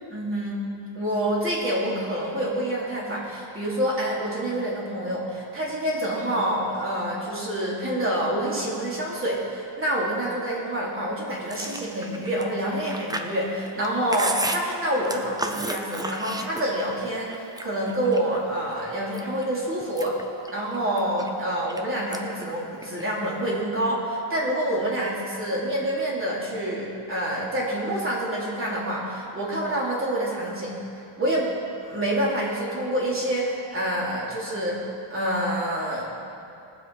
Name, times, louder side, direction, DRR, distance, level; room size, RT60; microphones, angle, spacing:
voice 1, 0.1-0.6 0.9-20.2 20.5-31.5 31.8-36.2, right 1 dB, 25° right, -5 dB, 3.3 m, -27 dB
Chewing mastication, 11.5-16.9 17.3-18.4 18.9-19.4 19.8-21.8 22.1-22.4 22.7-23.5, right 1 dB, 10° right, 0.5 m, -33 dB
20.5 x 7.7 x 4.8 m, 2.7 s
cardioid pair, 165°, 50 cm